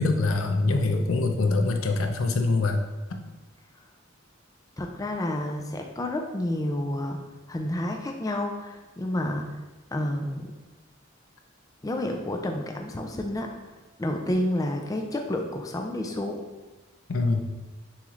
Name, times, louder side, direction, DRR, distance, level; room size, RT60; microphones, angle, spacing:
voice 1, 0.0-2.8 17.1-17.4, left 3 dB, 90° left, 4 dB, 0.6 m, -24 dB
voice 2, 4.8-7.2 7.5-9.5 9.9-10.5 11.8-16.4, left 1 dB, 15° left, 3 dB, 0.4 m, -30 dB
7.0 x 3.1 x 2.4 m, 1.2 s
head